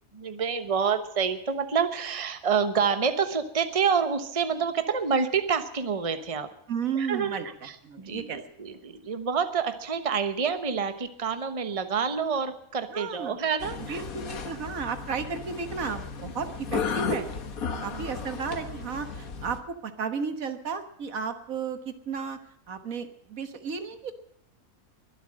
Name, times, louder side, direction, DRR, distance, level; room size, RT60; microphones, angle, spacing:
voice 1, 0.1-6.5 7.0-14.0 17.7-18.1, right 6 dB, 25° right, 10 dB, 1.1 m, -28 dB
voice 2, 6.7-7.5 7.8-8.4 8.7-8.9 12.9-13.4 13.9-17.3 17.8-22.4 22.7-24.1, right 6 dB, 75° right, 9 dB, 1.8 m, -33 dB
sound 1, 13.6-19.6, left 5 dB, 85° left, 1.8 m, -34 dB
22.5 x 8.1 x 7.6 m, 0.73 s
omnidirectional pair, 1.4 m